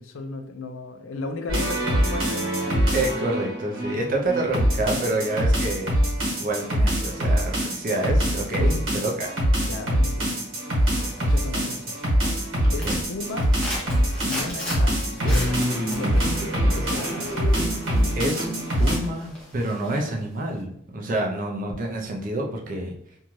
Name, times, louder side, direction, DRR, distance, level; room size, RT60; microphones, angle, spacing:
voice 1, 0.0-3.0 8.6-8.9 9.6-10.4 11.0-12.0 12.7-13.5 14.2-16.3 16.7-17.2, left 3 dB, 80° left, 6 dB, 0.4 m, -35 dB
sound 1, 1.5-19.0, equal, 80° right, 1.2 m, -23 dB
voice 2, 2.9-5.9 6.4-9.3 12.8-13.0 18.2-18.5 18.8-22.9, right 1 dB, 40° right, 0 dB, 0.5 m, -27 dB
sound 2, 10.8-12.0 12.2-20.2 20.6-20.7, left 1 dB, 5° left, 0.7 m, -38 dB
2.7 x 2.3 x 3.0 m, 0.71 s
head